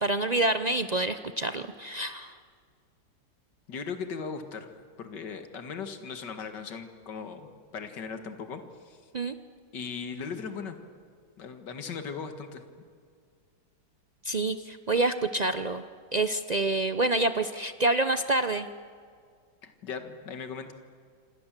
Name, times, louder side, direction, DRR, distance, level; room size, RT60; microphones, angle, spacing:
voice 1, 0.0-2.3 9.1-9.4 14.2-15.8 16.1-18.7, right 2 dB, 85° right, 9 dB, 0.3 m, -27 dB
voice 2, 3.7-4.7 5.0-9.1 9.7-10.8 11.4-12.6 19.6-20.7, left 5 dB, 65° left, 7 dB, 2.4 m, -38 dB
27.0 x 27.0 x 7.5 m, 2.1 s
omnidirectional pair, 2.0 m